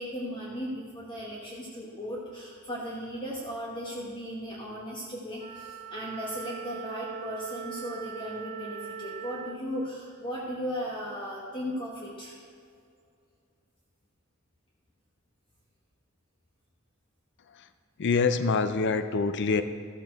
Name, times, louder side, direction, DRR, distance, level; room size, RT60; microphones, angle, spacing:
voice 1, 0.0-12.4, equal, 25° left, -4 dB, 1.2 m, -36 dB
Wind instrument woodwind instrument, 5.4-9.7, right 7 dB, 40° right, 0.9 m, -40 dB
voice 2, 18.0-19.6, left 4 dB, 55° left, 10 dB, 0.5 m, -25 dB
13.0 x 7.2 x 4.6 m, 2.3 s
head